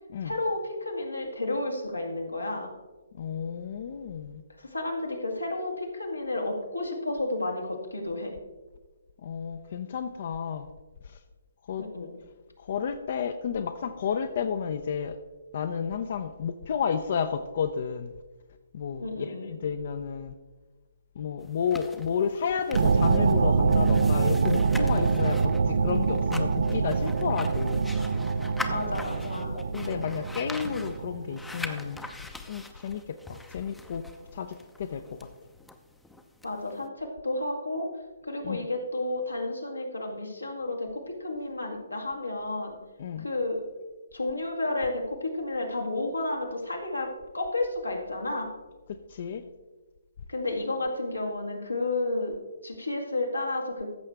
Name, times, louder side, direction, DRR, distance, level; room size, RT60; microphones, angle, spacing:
voice 1, 0.2-2.7 4.6-8.3 11.8-12.1 19.0-19.6 28.7-29.6 36.4-37.9 38.2-42.8 43.2-43.6 44.1-47.1 47.3-48.5 50.3-52.3 52.6-53.9, left 2 dB, 90° left, 1 dB, 2.0 m, -31 dB
voice 2, 3.1-4.4 9.2-10.7 11.0-11.2 11.7-11.8 12.6-15.2 15.5-18.1 18.7-20.3 21.2-27.9 29.5-32.0 32.5-34.0 34.3-35.3 38.4-38.6 43.0-43.3 49.1-49.4, left 7 dB, 50° left, 9 dB, 0.5 m, -31 dB
sound 1, 21.4-36.9, left 2 dB, 5° left, 0.6 m, -43 dB
sound 2, 22.7-31.9, right 4 dB, 60° right, 0.4 m, -25 dB
14.0 x 6.5 x 3.4 m, 1.2 s
figure-of-eight pair, 135°, 0 cm